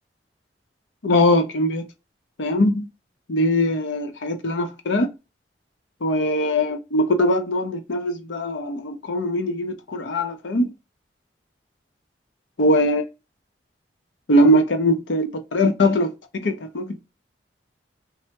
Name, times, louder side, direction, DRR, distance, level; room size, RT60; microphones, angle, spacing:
voice 1, 1.0-1.9 2.4-2.9 3.3-5.1 6.0-10.7 12.6-13.0 14.3-16.1 16.4-17.0, left 1 dB, 90° left, 0.7 m, -21 dB
3.3 x 2.0 x 2.8 m
head